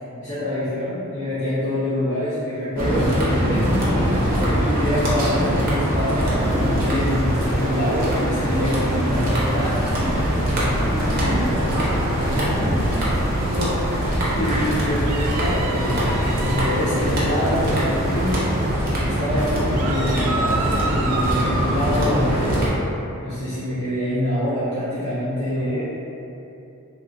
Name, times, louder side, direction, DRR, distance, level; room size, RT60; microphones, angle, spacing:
voice 1, 0.2-10.1 11.1-11.4 13.5-22.6 23.2-25.8, equal, 55° left, -13 dB, 0.7 m, -26 dB
sound 1, 2.8-22.7, equal, 40° right, 0.7 m, -22 dB
sound 2, 6.4-18.8, equal, 15° left, 0.3 m, -41 dB
voice 2, 9.9-13.2 19.3-19.6 25.4-25.8, equal, 70° left, -10 dB, 1.2 m, -35 dB
sound 3, 15.0-16.8 19.7-21.8, right 3 dB, 85° right, 0.4 m, -29 dB
3.2 x 2.5 x 2.6 m, 2.8 s
head